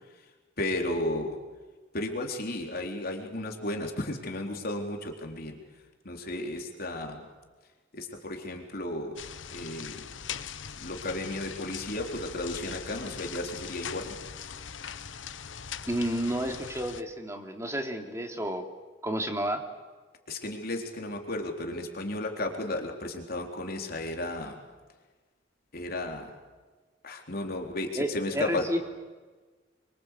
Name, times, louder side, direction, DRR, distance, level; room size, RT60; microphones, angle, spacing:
voice 1, 0.6-1.4 1.9-5.6 6.0-7.2 7.9-9.2 9.5-10.1 10.8-14.2 20.3-24.6 25.7-26.3 27.0-28.7, left 1 dB, 55° left, 2 dB, 3.9 m, -34 dB
sound 1, 9.2-17.0, left 7 dB, 85° left, 1.1 m, -41 dB
voice 2, 15.8-18.6 19.0-19.6 28.0-28.8, right 1 dB, 15° right, 3 dB, 3.1 m, -31 dB
28.5 x 24.5 x 8.4 m, 1.3 s
head